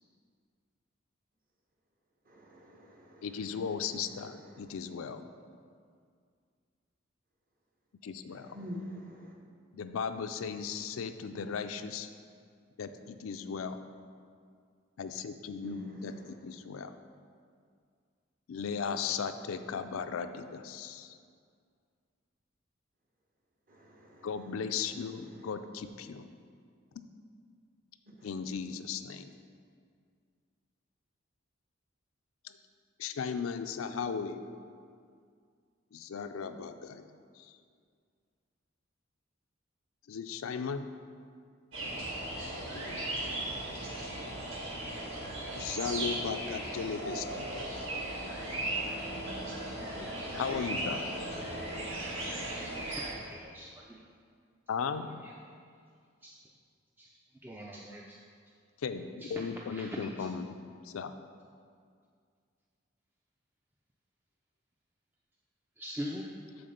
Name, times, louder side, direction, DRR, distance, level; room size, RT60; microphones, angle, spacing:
voice 1, 2.3-3.3 8.3-9.3 15.6-16.4 23.7-24.3 28.2-28.3, equal, 45° right, -1 dB, 1.1 m, -46 dB
voice 2, 3.2-5.2 8.0-8.5 9.7-12.1 12.8-13.8 15.0-16.9 18.5-21.2 24.2-26.3 27.0-27.1 28.2-29.3 33.0-34.5 35.9-37.1 37.4-37.5 40.1-40.9 42.7-43.4 45.5-48.0 50.4-51.1 54.7-55.1 58.8-60.5 60.8-61.2, left 6 dB, 90° left, 9 dB, 0.4 m, -37 dB
sound 1, 41.7-53.1, right 1 dB, 75° right, 1.5 m, -37 dB
voice 3, 50.0-50.4 52.3-52.6 52.9-54.0 55.2-55.3 56.2-56.3 57.0-57.1 57.4-58.2 59.2-59.4 59.7-59.9 60.2-60.3 65.8-66.3, equal, 10° right, -2 dB, 0.3 m, -43 dB
7.8 x 3.7 x 6.5 m, 2.2 s
head